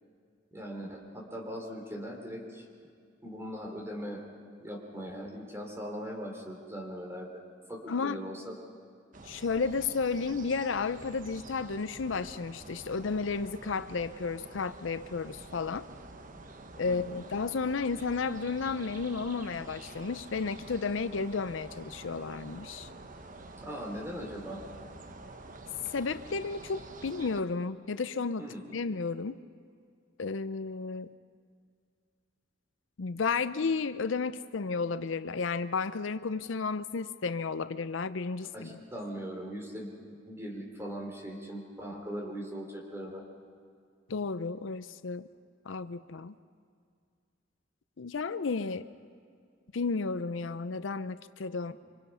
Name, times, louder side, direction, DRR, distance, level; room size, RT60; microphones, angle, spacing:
voice 1, 0.5-2.7 3.2-4.2 4.6-7.4 7.7-8.4 16.9-17.2 23.6-24.6 28.4-28.6 38.5-43.2, equal, 15° right, 1 dB, 3.4 m, -40 dB
voice 2, 7.9-8.2 9.2-15.9 16.8-22.9 25.9-29.4 30.2-31.1 33.0-38.8 44.1-45.3 45.7-46.3 48.0-48.9 49.7-51.7, left 4 dB, 75° left, 13 dB, 0.6 m, -32 dB
sound 1, 9.1-27.4, right 2 dB, 45° right, 1.1 m, -48 dB
26.0 x 25.5 x 5.6 m, 2.2 s
head